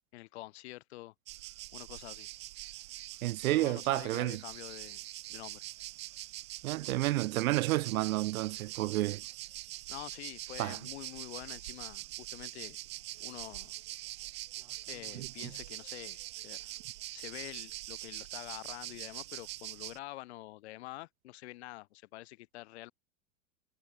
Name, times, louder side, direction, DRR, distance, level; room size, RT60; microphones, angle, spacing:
voice 1, 0.1-1.1 1.7-2.3 3.5-5.0 5.3-5.6 9.9-12.8 13.2-13.7 14.9-16.8 17.1-22.9, left 18 dB, 50° left, 1.2 m, -47 dB
sound 1, 1.3-20.0, right 17 dB, 20° right, 0.4 m, -44 dB
voice 2, 3.2-4.4 6.6-9.2 10.6-10.8 15.1-15.3, right 17 dB, 70° right, 0.6 m, -30 dB
sound 2, 13.1-13.2 14.5-16.3 17.4-17.5 18.4-18.6, right 2 dB, 5° right, 4.3 m, -66 dB
supercardioid pair, 180°, 43 cm